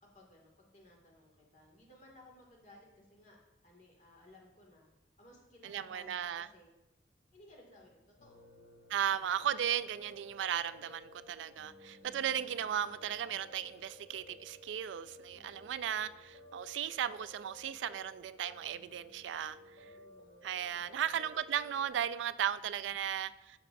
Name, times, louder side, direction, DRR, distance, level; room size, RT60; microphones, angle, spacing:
voice 1, 0.0-4.9 5.2-6.7 7.3-8.6 15.3-16.0 19.7-21.2, left 1 dB, 45° left, 2.0 m, -60 dB
voice 2, 5.6-6.5 8.9-19.9 20.4-23.6, right 9 dB, 90° right, 0.3 m, -36 dB
Piano, 8.2-21.9, left 2 dB, 70° left, 2.4 m, -57 dB
12.0 x 6.0 x 2.6 m
head